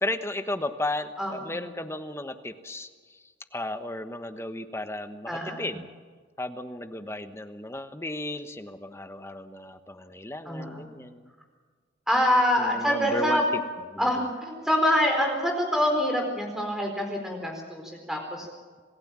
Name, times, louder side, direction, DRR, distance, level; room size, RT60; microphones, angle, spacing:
voice 1, 0.0-3.2 3.5-5.9 6.4-11.3 12.6-13.4 13.9-14.1, left 1 dB, 15° left, 8 dB, 1.1 m, -34 dB
voice 2, 1.2-1.6 5.3-5.7 10.5-11.0 12.1-13.4 14.0-18.5, equal, 5° right, 2 dB, 4.3 m, -26 dB
27.0 x 16.0 x 7.5 m, 1.5 s
head